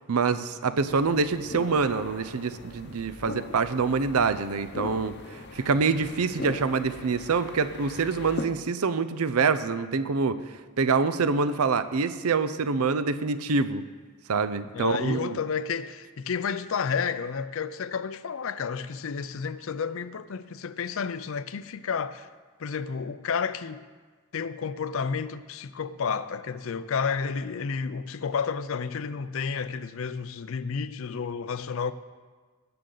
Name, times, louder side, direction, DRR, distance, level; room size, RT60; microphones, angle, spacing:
voice 1, 0.1-10.4 10.8-13.8 14.3-15.4, right 4 dB, 80° right, 0.6 m, -26 dB
sound 1, 0.9-8.5, left 2 dB, 50° left, 0.8 m, -40 dB
voice 2, 14.7-22.3 22.6-23.8 24.3-31.9, left 6 dB, 65° left, 0.5 m, -31 dB
18.0 x 7.7 x 3.9 m
head